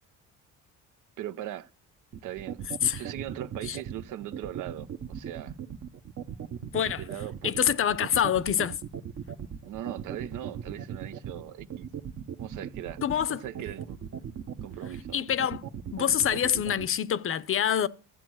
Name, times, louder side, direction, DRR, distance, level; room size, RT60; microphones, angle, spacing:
voice 1, 1.2-1.7 2.2-2.6 2.9-5.5 7.0-7.8 9.6-11.9 12.4-13.0 13.3-14.0 14.6-15.2, right 12 dB, 65° right, 0.8 m, -39 dB
sound 1, 2.1-16.9, right 8 dB, 45° right, 1.1 m, -38 dB
voice 2, 6.7-7.0 7.4-8.8 13.0-13.4 15.1-15.6 15.9-17.9, left 9 dB, 40° left, 0.7 m, -26 dB
13.5 x 7.9 x 6.3 m
supercardioid pair, 85°, 33 cm